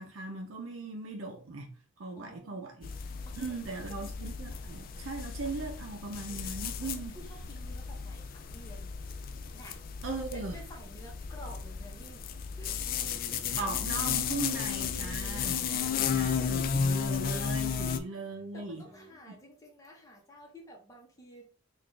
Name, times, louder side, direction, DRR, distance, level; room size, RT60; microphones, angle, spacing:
voice 1, 0.0-1.7 2.0-2.9 3.3-7.1 10.0-10.5 13.6-18.8 19.3-19.4, right 3 dB, 90° right, 0.6 m, -39 dB
voice 2, 2.1-2.8 3.2-3.9 6.8-8.9 9.5-9.8 10.3-12.3 12.6-12.9 15.3-15.5 17.7-17.9 18.5-21.4, equal, 15° left, 1.0 m, -51 dB
sound 1, 2.8-18.0, left 6 dB, 45° left, 0.3 m, -34 dB
sound 2, 12.7-14.0 14.5-16.2 16.5-19.2, equal, 65° right, 1.0 m, -60 dB
4.0 x 2.5 x 3.2 m
head